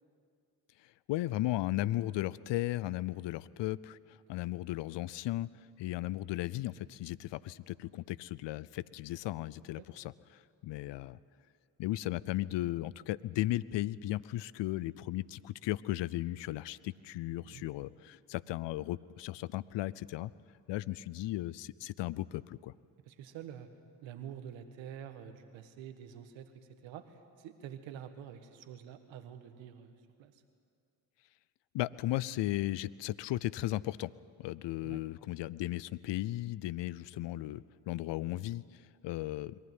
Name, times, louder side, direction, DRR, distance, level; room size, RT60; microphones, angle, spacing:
voice 1, 1.1-5.5 5.8-11.2 11.8-20.3 20.7-22.7 31.7-34.1 34.4-39.6, left 16 dB, 70° left, 20 dB, 0.6 m, -36 dB
voice 2, 23.1-23.7 24.0-30.4 34.8-35.0, right 9 dB, 85° right, 9 dB, 1.5 m, -47 dB
22.5 x 15.0 x 9.6 m, 2.3 s
hypercardioid pair, 45°, 44 cm